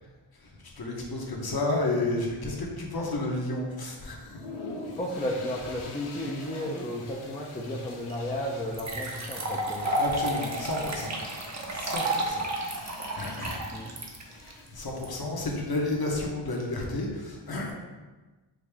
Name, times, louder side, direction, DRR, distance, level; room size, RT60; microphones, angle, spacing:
voice 1, 0.4-4.4 9.8-11.2 11.7-14.4 14.7-17.7, left 2 dB, 50° left, -1 dB, 1.0 m, -32 dB
sound 1, 4.2-15.2, left 3 dB, 90° left, 0.8 m, -45 dB
voice 2, 4.8-9.9 13.7-13.9, left 1 dB, 15° left, -3 dB, 0.5 m, -33 dB
sound 2, 8.1-8.2 8.7-15.0, right 1 dB, 35° right, 0.7 m, -31 dB
5.1 x 2.7 x 3.4 m, 1.2 s
wide cardioid pair, 75°, 48 cm